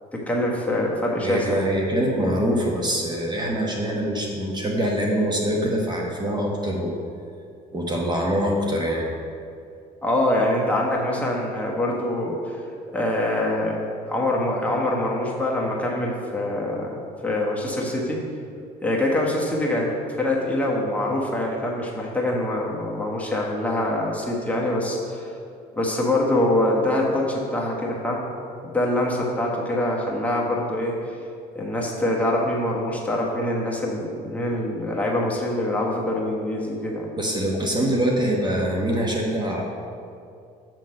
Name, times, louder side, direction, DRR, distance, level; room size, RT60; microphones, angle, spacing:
voice 1, 0.1-1.6 10.0-12.6 12.9-13.8 14.1-17.0 17.2-18.2 18.8-19.9 20.2-25.3 25.8-28.2 28.6-31.1 31.5-37.1, left 1 dB, 10° left, -3 dB, 1.2 m, -24 dB
voice 2, 1.2-6.9 7.7-9.1 37.2-39.6, right 1 dB, 25° right, -1 dB, 1.0 m, -24 dB
7.3 x 3.8 x 6.3 m, 2.4 s
cardioid pair, 110°, 17 cm